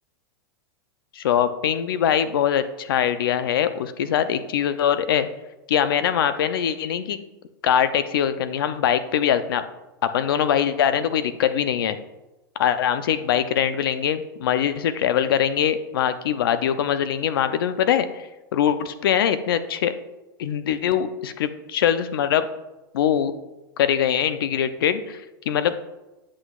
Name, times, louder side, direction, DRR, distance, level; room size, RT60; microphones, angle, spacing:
voice 1, 1.1-5.3 5.7-7.2 7.6-9.6 10.0-12.0 12.6-19.9 20.4-22.5 22.9-23.3 23.8-25.8, left 9 dB, 85° left, 12 dB, 0.5 m, -22 dB
9.6 x 6.2 x 2.4 m, 1.0 s
supercardioid pair, 125°, 12 cm